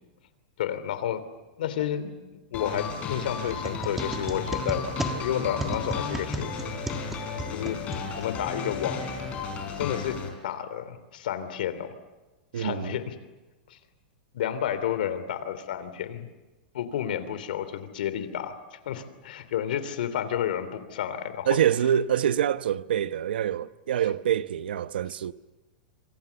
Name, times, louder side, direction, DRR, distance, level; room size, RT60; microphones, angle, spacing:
voice 1, 0.6-1.2 1.6-6.8 7.5-9.2 9.8-11.9 12.5-13.1 13.7-13.8 14.3-16.3 16.7-21.6, left 10 dB, 70° left, 3.0 m, -31 dB
sound 1, 2.5-10.3, left 5 dB, 25° left, 5.0 m, -34 dB
sound 2, 3.5-8.6, right 2 dB, 5° right, 1.6 m, -36 dB
voice 2, 12.5-13.0 21.5-25.3, right 10 dB, 90° right, 1.0 m, -25 dB
26.5 x 26.5 x 7.0 m
supercardioid pair, 165°, 5 cm